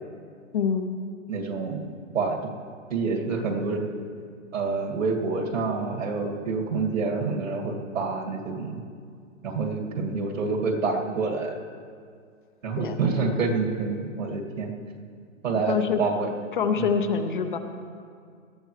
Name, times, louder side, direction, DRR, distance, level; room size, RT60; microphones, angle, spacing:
voice 1, 0.5-0.9 12.8-13.0 15.7-16.0 16.5-17.6, left 6 dB, 40° left, 7 dB, 0.7 m, -25 dB
voice 2, 1.3-1.9 2.1-2.4 2.9-3.9 4.5-8.8 9.4-11.6 12.6-14.7 15.4-16.3 16.8-16.9, right 4 dB, 75° right, 1 dB, 2.4 m, -27 dB
19.0 x 12.5 x 3.2 m, 2.1 s
hypercardioid pair, 165°, 39 cm